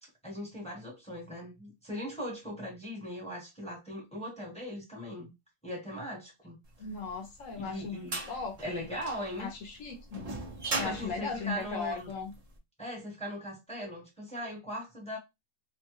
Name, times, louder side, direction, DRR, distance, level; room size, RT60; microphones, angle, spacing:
voice 1, 0.2-5.3 5.6-6.6 7.6-8.2 8.6-9.5 10.8-12.1 12.8-15.2, equal, 5° left, 0.7 m, -39 dB
voice 2, 6.8-8.0 8.3-8.9 9.4-10.3 10.8-12.3, left 5 dB, 60° left, 0.9 m, -37 dB
sound 1, 7.0-12.4, right 2 dB, 80° right, 0.3 m, -38 dB
3.0 x 2.2 x 3.0 m
omnidirectional pair, 1.9 m